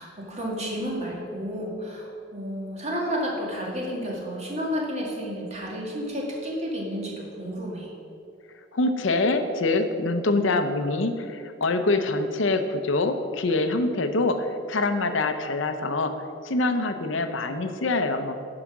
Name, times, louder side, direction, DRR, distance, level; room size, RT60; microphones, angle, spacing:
voice 1, 0.0-7.9, equal, 35° right, -2 dB, 1.8 m, -31 dB
voice 2, 8.7-16.1 16.4-18.4, left 2 dB, 80° left, 8 dB, 0.7 m, -25 dB
11.0 x 4.9 x 6.0 m, 2.6 s
head